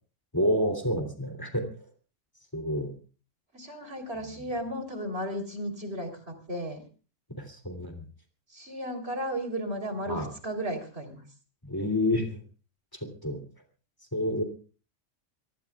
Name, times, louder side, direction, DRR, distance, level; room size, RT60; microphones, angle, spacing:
voice 1, 0.3-1.6 2.5-2.9 7.3-8.0 10.1-10.3 11.6-12.4 13.0-13.4 14.1-14.4, left 1 dB, 15° left, 5 dB, 3.1 m, -29 dB
voice 2, 3.5-6.8 8.5-11.2, equal, 55° right, 6 dB, 3.9 m, -34 dB
27.0 x 19.0 x 2.4 m, 0.37 s
omnidirectional pair, 1.3 m